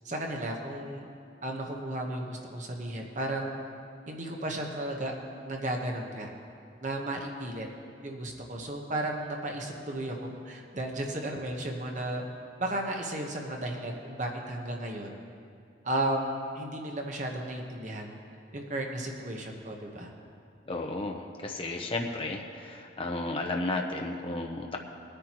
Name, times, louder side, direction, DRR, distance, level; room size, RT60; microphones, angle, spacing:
voice 1, 0.0-1.1 1.4-3.6 4.1-5.1 5.4-6.3 6.8-7.7 8.0-12.3 12.6-15.1 15.8-18.1 18.5-20.1, right 1 dB, 45° right, 1 dB, 1.1 m, -34 dB
voice 2, 20.7-24.8, left 2 dB, 30° left, 1 dB, 0.8 m, -33 dB
20.5 x 9.9 x 3.0 m, 2.5 s
head